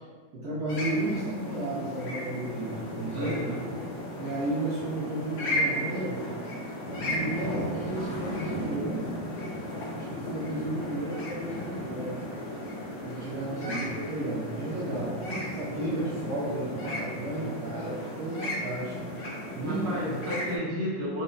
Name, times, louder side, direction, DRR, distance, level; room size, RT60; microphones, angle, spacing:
voice 1, 0.3-3.3 4.2-6.3 6.9-9.1 9.9-12.2 13.0-19.0 19.6-20.0, right 1 dB, 65° right, -8 dB, 1.1 m, -33 dB
sound 1, 0.7-20.6, left 1 dB, 60° left, 1.0 m, -35 dB
voice 2, 3.1-3.6 13.4-13.8 19.6-21.2, equal, 45° right, -6 dB, 1.0 m, -33 dB
4.1 x 2.1 x 3.8 m, 1.4 s
omnidirectional pair, 2.1 m